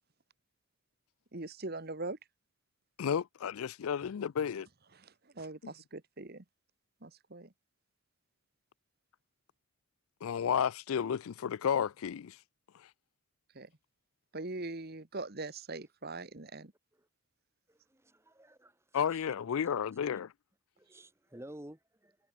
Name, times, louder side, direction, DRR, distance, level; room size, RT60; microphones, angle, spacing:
voice 1, 1.3-2.2 4.9-6.4 7.0-7.5 13.5-13.7 14.3-16.7, right 2 dB, 45° right, 1.4 m, -42 dB
voice 2, 3.0-4.7 5.6-5.7 10.2-12.4 18.9-20.3, left 8 dB, 70° left, 0.4 m, -32 dB
voice 3, 17.7-19.3 20.8-22.2, right 1 dB, 10° right, 1.4 m, -52 dB
head